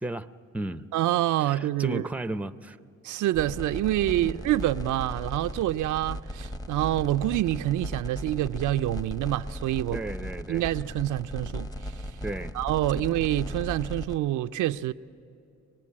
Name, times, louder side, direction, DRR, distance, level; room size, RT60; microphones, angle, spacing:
voice 1, 0.0-0.9 1.4-2.8 4.2-4.4 9.9-10.7 12.2-12.6 12.9-13.0, right 2 dB, 5° right, 0.6 m, -34 dB
voice 2, 0.9-2.0 3.0-10.0 10.5-11.9 12.5-14.9, right 14 dB, 80° right, 0.5 m, -27 dB
sound 1, 3.3-14.2, equal, 15° left, 1.0 m, -37 dB
24.5 x 19.5 x 8.6 m
cardioid pair, 90°, 30 cm